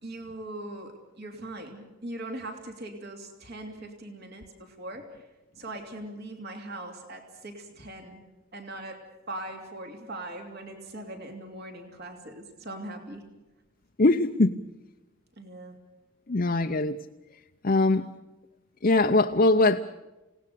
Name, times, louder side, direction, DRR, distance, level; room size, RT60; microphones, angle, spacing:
voice 1, 0.0-5.1 5.6-8.2 8.5-13.2 15.4-15.8, right 1 dB, 50° right, 3 dB, 2.9 m, -40 dB
voice 2, 14.0-14.6 16.3-17.0 17.6-18.1 18.8-19.8, left 2 dB, 40° left, 5 dB, 0.7 m, -21 dB
28.5 x 18.0 x 6.9 m, 1.1 s
head